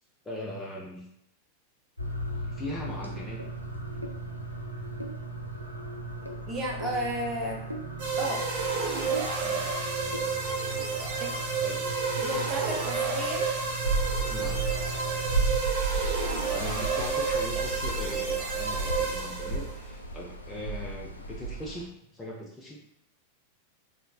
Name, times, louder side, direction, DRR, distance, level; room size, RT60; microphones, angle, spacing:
voice 1, 0.2-1.0 2.5-3.4 9.4-9.9 11.6-11.9 14.3-14.6 16.5-22.8, left 1 dB, 10° left, -4 dB, 0.5 m, -40 dB
sound 1, 2.0-15.6, right 2 dB, 90° right, 0.4 m, -38 dB
voice 2, 6.5-7.6 8.2-8.4 11.2-11.3 12.2-13.5, right 1 dB, 20° right, -2 dB, 0.8 m, -32 dB
sound 2, 8.0-19.8, right 4 dB, 55° right, 0.6 m, -30 dB
sound 3, 13.8-21.8, right 3 dB, 80° left, 0.3 m, -32 dB
4.2 x 2.1 x 2.3 m, 0.77 s
figure-of-eight pair, 90°, 0 cm